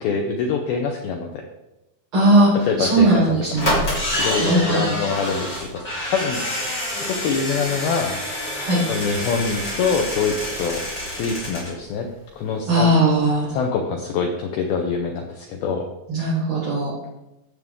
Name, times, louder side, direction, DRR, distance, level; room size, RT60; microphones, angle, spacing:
voice 1, 0.0-1.4 2.7-3.9 4.2-5.8 6.1-6.4 6.9-8.2 8.9-10.8 11.2-12.1 12.4-12.9 13.5-15.9, left 5 dB, 90° left, 2 dB, 2.1 m, -25 dB
voice 2, 2.1-2.5 2.8-3.8 4.4-4.8 8.6-8.8 12.7-13.5 16.1-16.9, right 1 dB, 30° right, -10 dB, 4.4 m, -18 dB
sound 1, 2.9-3.0 3.5-11.7 12.1-12.2 12.4-12.5, left 1 dB, 25° left, 3.0 m, -27 dB
15.5 x 6.8 x 3.7 m, 0.94 s
omnidirectional pair, 5.6 m